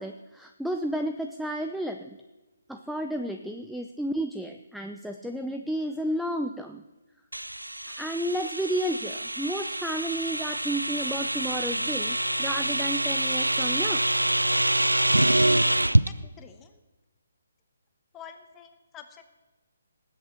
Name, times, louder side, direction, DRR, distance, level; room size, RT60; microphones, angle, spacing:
voice 1, 0.0-2.2 2.7-6.8 8.0-14.0, right 1 dB, ahead, 5 dB, 0.4 m, -32 dB
sound 1, 7.3-16.1, right 1 dB, 80° right, 0.5 m, -25 dB
voice 2, 16.2-16.8 18.1-19.2, left 8 dB, 15° left, 7 dB, 1.0 m, -48 dB
19.0 x 8.1 x 4.5 m, 1.1 s
figure-of-eight pair, 140°, 0 cm